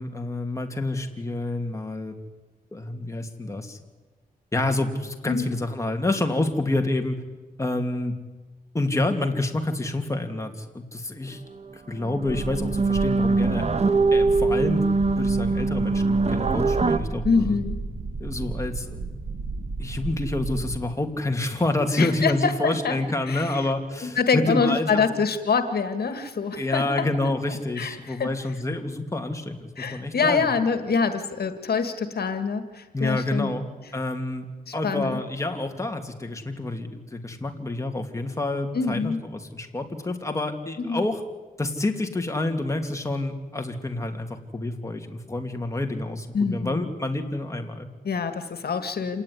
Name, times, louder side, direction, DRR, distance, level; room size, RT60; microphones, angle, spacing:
voice 1, 0.0-2.2 2.7-3.8 4.5-7.2 7.6-8.1 8.7-11.4 11.7-13.7 14.1-17.6 18.2-19.0 19.8-25.1 26.1-26.2 26.5-30.5 32.9-33.7 33.9-34.5 34.7-41.2 41.6-47.9, left 2 dB, 20° left, 4 dB, 2.8 m, -28 dB
sound 1, 11.6-11.7 12.0-17.0, right 3 dB, 45° right, 1.4 m, -23 dB
sound 2, 12.2-20.9, right 3 dB, 80° right, 2.2 m, -33 dB
voice 2, 17.2-17.8 22.0-23.0 23.3-23.6 24.0-27.1 27.8-28.3 29.8-33.6 34.7-35.2 38.7-39.2 40.8-41.0 46.3-46.8 48.0-49.2, left 5 dB, 80° left, 9 dB, 1.9 m, -25 dB
27.5 x 18.5 x 9.9 m, 1.2 s
wide cardioid pair, 105°, 16 cm